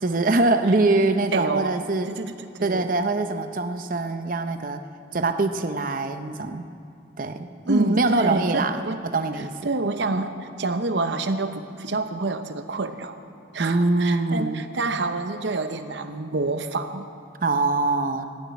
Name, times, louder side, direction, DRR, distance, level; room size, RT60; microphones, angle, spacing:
voice 1, 0.0-2.1 2.6-4.8 5.1-6.6 7.2-9.5 13.6-14.6 17.4-18.3, right 2 dB, 50° right, 8 dB, 0.7 m, -23 dB
voice 2, 1.3-1.7 2.1-2.9 7.7-9.0 9.6-13.2 13.5-17.1, right 3 dB, 80° right, 9 dB, 0.8 m, -27 dB
17.5 x 7.3 x 9.3 m, 2.4 s
head